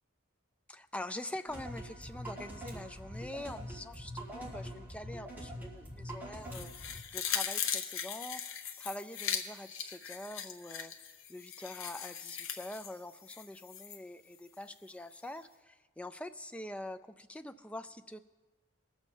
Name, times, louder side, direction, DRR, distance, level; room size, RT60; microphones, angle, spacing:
voice 1, 0.7-6.8 7.1-18.2, left 1 dB, 5° left, 10 dB, 0.3 m, -45 dB
sound 1, 1.5-7.0, equal, 10° right, 2.0 m, -44 dB
sound 2, 6.5-14.0 14.3-14.4, left 8 dB, 75° left, 0.8 m, -39 dB
20.5 x 7.2 x 4.4 m, 1.2 s
head